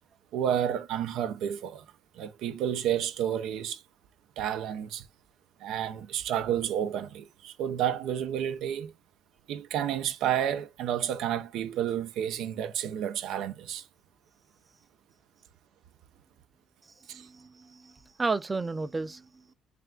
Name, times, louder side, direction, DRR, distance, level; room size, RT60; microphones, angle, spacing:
voice 1, 0.3-1.9 2.1-3.8 4.4-5.0 5.6-8.9 9.5-13.9 17.1-17.3, right 10 dB, 90° right, 0.5 m, -30 dB
voice 2, 17.0-19.5, right 3 dB, 25° right, 0.4 m, -33 dB
3.3 x 2.3 x 3.6 m
cardioid pair, 90°, 0 cm